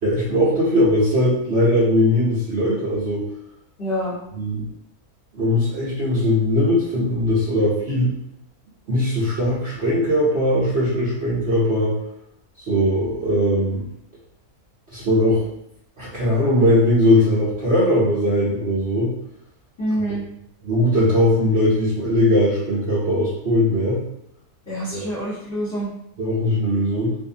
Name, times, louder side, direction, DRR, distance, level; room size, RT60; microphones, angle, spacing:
voice 1, 0.0-3.3 4.3-4.7 5.3-8.1 8.9-11.9 12.6-13.8 14.9-15.4 16.0-19.1 20.1-20.2 20.6-24.0 24.9-25.1 26.2-27.2, left 1 dB, 50° right, -10 dB, 0.9 m, -19 dB
voice 2, 3.8-4.1 19.8-20.2 24.7-25.9, equal, 30° left, -11 dB, 1.1 m, -26 dB
2.6 x 2.6 x 2.7 m, 0.77 s
omnidirectional pair, 1.6 m